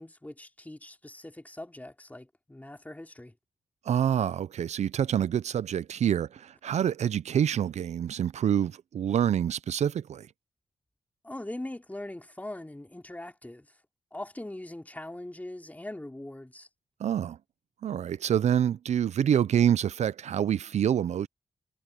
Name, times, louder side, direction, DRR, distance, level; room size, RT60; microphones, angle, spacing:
voice 1, 0.0-3.3 11.2-13.7 14.1-16.7, left 1 dB, 15° left, 2.9 m, -41 dB
voice 2, 3.9-10.3 17.0-17.4 17.8-21.3, right 9 dB, 75° right, 0.5 m, -26 dB
cardioid pair, 65°, 12 cm